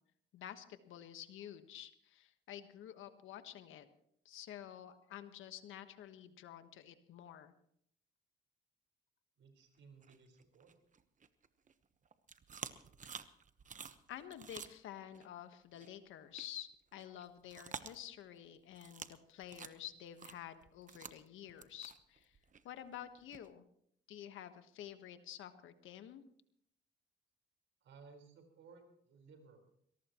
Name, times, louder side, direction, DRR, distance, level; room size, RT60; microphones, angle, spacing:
voice 1, 0.3-3.9 4.2-7.5 13.0-13.1 14.1-22.4 22.6-23.6 24.1-26.2, left 11 dB, 80° left, 9 dB, 1.4 m, -50 dB
voice 2, 9.4-10.8 27.8-29.7, right 4 dB, 70° right, 5 dB, 4.5 m, -60 dB
sound 1, 10.0-11.7 12.0-15.3 15.7-15.9 16.3-16.5 16.7-18.4 18.7-19.2 19.4-23.5, right 6 dB, 40° right, 1.1 m, -50 dB
22.5 x 18.5 x 3.0 m, 0.69 s
cardioid pair, 90°, 20 cm